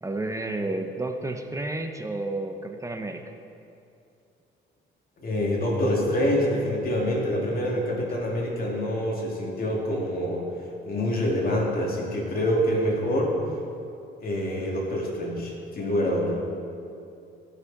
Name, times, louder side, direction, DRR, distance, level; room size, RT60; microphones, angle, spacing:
voice 1, 0.0-3.3, right 2 dB, 15° right, 5 dB, 0.7 m, -31 dB
voice 2, 5.2-10.5 10.9-13.4 14.2-16.4, equal, 50° left, -2 dB, 2.4 m, -26 dB
15.5 x 6.2 x 4.0 m, 2.5 s
cardioid pair, 90°, 20 cm